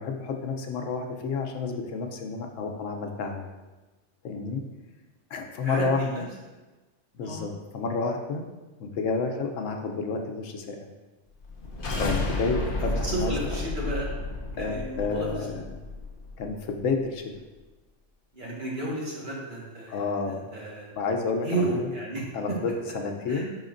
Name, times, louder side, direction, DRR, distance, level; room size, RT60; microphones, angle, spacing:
voice 1, 0.0-3.5 4.2-4.6 5.3-6.3 7.1-8.5 8.8-10.9 12.0-13.3 14.6-15.6 16.4-17.3 19.9-20.4 21.0-21.9 22.3-23.5, left 4 dB, 90° left, 4 dB, 1.2 m, -30 dB
voice 2, 5.6-6.2 7.2-7.5 13.0-14.1 14.6-15.3 18.3-20.9 21.4-22.6 23.3-23.4, right 2 dB, 40° right, -5 dB, 1.7 m, -32 dB
sound 1, 11.4-16.5, left 2 dB, 50° left, 1.1 m, -32 dB
9.3 x 5.6 x 2.6 m, 1.2 s
omnidirectional pair, 1.3 m